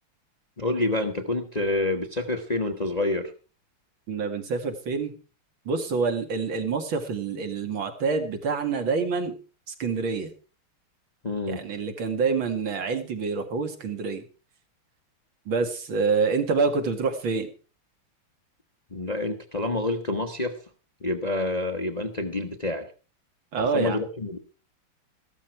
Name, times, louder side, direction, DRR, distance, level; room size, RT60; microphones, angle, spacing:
voice 1, 0.6-3.3 11.2-11.6 18.9-20.6 21.0-22.9 23.6-24.4, left 2 dB, 25° left, 5 dB, 0.9 m, -28 dB
voice 2, 4.1-5.1 5.7-9.4 9.8-10.3 11.5-14.2 15.5-17.5 23.5-24.0, right 4 dB, 65° right, 7 dB, 2.6 m, -27 dB
14.5 x 13.0 x 4.5 m, 0.35 s
omnidirectional pair, 2.4 m